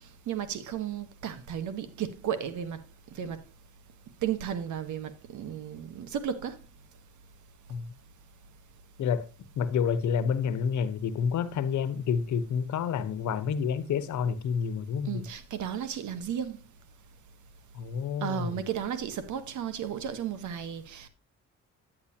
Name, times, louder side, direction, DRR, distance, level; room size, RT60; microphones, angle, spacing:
voice 1, 0.3-2.8 3.2-3.4 4.2-6.6 15.0-16.6 18.2-21.1, right 9 dB, 75° right, 1.4 m, -34 dB
voice 2, 9.6-15.2 17.7-18.6, left 7 dB, 70° left, 1.2 m, -29 dB
9.8 x 9.4 x 2.9 m
cardioid pair, 90°, 30 cm